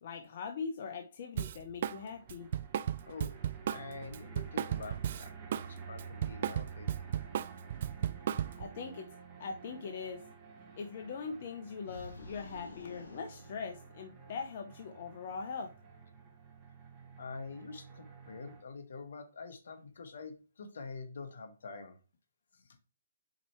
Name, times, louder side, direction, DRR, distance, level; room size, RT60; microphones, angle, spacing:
voice 1, 0.0-2.5 8.6-9.1 9.4-10.2 10.8-15.7, left 5 dB, 50° left, 5 dB, 0.8 m, -41 dB
Drum kit, 1.4-2.0 2.3-5.7 6.0-8.7, right 10 dB, 50° right, 0.3 m, -35 dB
sound 1, 1.9-18.6, right 5 dB, 15° right, 1.6 m, -51 dB
voice 2, 3.6-6.9 17.2-22.0 22.5-22.7, left 4 dB, 65° left, 7 dB, 1.3 m, -46 dB
sound 2, 11.8-14.3, left 2 dB, 85° left, 2.1 m, -50 dB
5.2 x 4.4 x 4.4 m, 0.32 s
hypercardioid pair, 145°, 0 cm